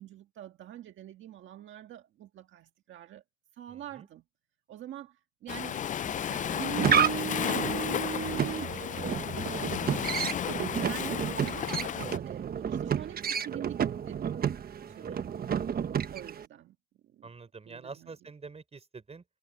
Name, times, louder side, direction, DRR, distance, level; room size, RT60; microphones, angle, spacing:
voice 1, 0.0-3.2 3.5-4.2 4.7-10.4 10.8-14.2 14.9-15.3 16.1-16.8 17.1-17.3 17.7-18.1, right 11 dB, 75° right, 1.6 m, -46 dB
voice 2, 3.7-4.1 9.5-9.9 14.9-15.2 17.2-19.2, right 4 dB, 30° right, 5.2 m, -47 dB
Waves surf, 5.5-12.2, left 9 dB, 40° left, 0.4 m, -33 dB
sound 1, 6.4-16.5, right 8 dB, 50° right, 1.2 m, -31 dB
cardioid pair, 90°, 20 cm